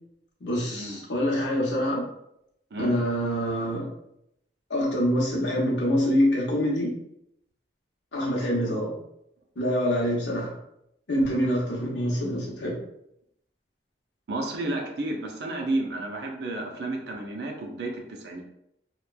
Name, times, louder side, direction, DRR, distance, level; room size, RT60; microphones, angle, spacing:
voice 1, 0.4-2.1 2.8-3.9 4.7-6.9 8.1-9.0 9.6-10.5 11.1-12.8, equal, 80° left, -3 dB, 0.8 m, -25 dB
voice 2, 14.3-18.4, right 2 dB, 70° right, 1 dB, 0.5 m, -31 dB
2.9 x 2.2 x 2.3 m, 0.78 s
head